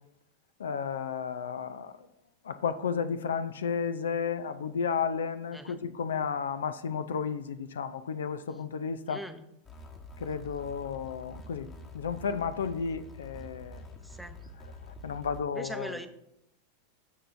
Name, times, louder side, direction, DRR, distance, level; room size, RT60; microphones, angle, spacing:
voice 1, 0.6-2.1 2.4-9.2 10.2-13.9 15.0-16.0, left 6 dB, 85° left, 0.4 m, -33 dB
voice 2, 9.1-9.5 14.0-14.4 15.5-16.1, right 1 dB, ahead, 0.7 m, -40 dB
sound 1, 9.6-15.4, left 2 dB, 30° left, 1.3 m, -47 dB
13.5 x 4.6 x 2.6 m
hypercardioid pair, 100°, 0 cm